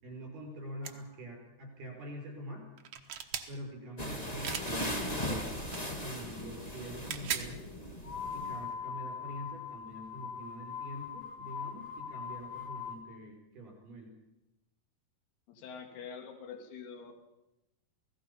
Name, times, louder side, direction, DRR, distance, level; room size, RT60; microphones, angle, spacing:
voice 1, 0.0-2.7 3.5-5.5 5.9-7.6 8.3-14.1, equal, 55° right, 1 dB, 7.3 m, -45 dB
sound 1, 0.8-0.9 2.8-3.5 4.4-4.7 5.7-5.9 6.9-7.5, right 9 dB, 85° right, 1.3 m, -37 dB
sound 2, 4.0-8.6, equal, 15° left, 1.3 m, -38 dB
sound 3, 8.0-13.0, left 7 dB, 40° left, 2.0 m, -41 dB
voice 2, 15.5-17.2, left 6 dB, 75° left, 5 dB, 3.9 m, -45 dB
28.0 x 18.0 x 5.6 m, 0.94 s
omnidirectional pair, 4.6 m